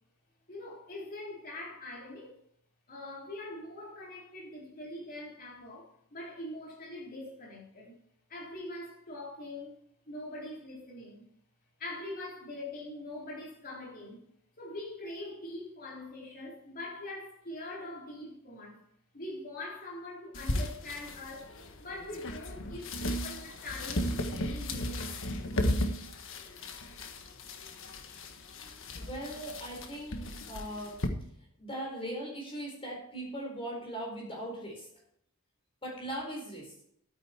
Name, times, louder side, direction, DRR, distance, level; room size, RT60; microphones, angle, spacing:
voice 1, 0.5-2.4 2.9-7.9 8.3-9.8 10.1-11.3 11.8-14.3 14.6-18.8 19.1-25.2, left 1 dB, 45° left, 3.8 m, -43 dB
sound 1, 20.3-31.1, left 1 dB, 65° left, 1.5 m, -36 dB
voice 2, 28.9-30.2 30.5-30.9 31.6-34.9 35.8-36.7, right 1 dB, 25° left, 4.2 m, -39 dB
12.0 x 9.4 x 4.4 m
head